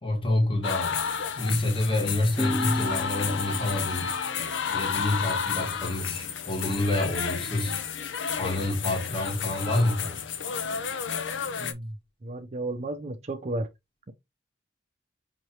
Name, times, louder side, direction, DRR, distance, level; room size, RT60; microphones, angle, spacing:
voice 1, 0.0-1.0 1.4-4.1 4.7-7.8 8.4-10.2, left 1 dB, 25° left, 1.5 m, -27 dB
sound 1, 0.6-11.7, left 6 dB, 70° left, 0.7 m, -31 dB
sound 2, 2.4-5.8, equal, 5° left, 0.6 m, -36 dB
voice 2, 11.6-12.0 12.2-13.7 14.1-14.2, right 2 dB, 35° right, 0.5 m, -33 dB
5.7 x 3.1 x 2.9 m
head